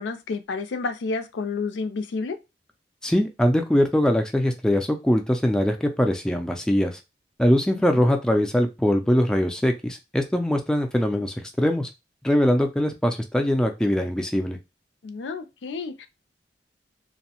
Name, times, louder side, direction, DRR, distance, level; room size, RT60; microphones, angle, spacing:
voice 1, 0.0-2.4 7.9-8.1 15.0-16.1, left 4 dB, 90° left, 0.4 m, -30 dB
voice 2, 3.0-7.0 7.4-11.9 12.2-14.6, equal, 5° left, 0.3 m, -22 dB
2.6 x 2.0 x 2.8 m
head